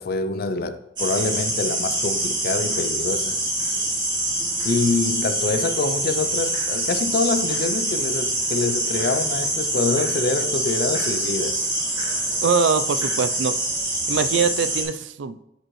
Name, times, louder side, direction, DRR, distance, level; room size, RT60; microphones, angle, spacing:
voice 1, 0.0-3.4 4.6-11.7, left 3 dB, 50° left, 0.4 m, -25 dB
sound 1, 1.0-14.8, right 1 dB, 25° right, 2.3 m, -25 dB
voice 2, 12.4-13.6 14.1-15.4, right 5 dB, 70° right, 0.4 m, -23 dB
9.6 x 5.3 x 3.1 m
head